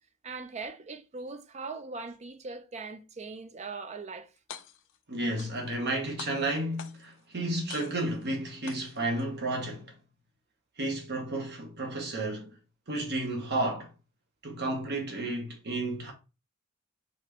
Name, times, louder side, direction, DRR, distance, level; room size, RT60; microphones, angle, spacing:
voice 1, 0.2-4.3, right 4 dB, 30° right, 0.5 m, -40 dB
sound 1, 4.4-5.0 5.4-5.9 6.2-7.2 7.7-8.2 8.7-9.2, left 8 dB, 60° left, 0.5 m, -45 dB
voice 2, 5.1-9.9 10.8-12.5 12.9-13.9 14.4-16.1, right 1 dB, 50° right, 1.2 m, -32 dB
4.3 x 4.0 x 3.0 m
head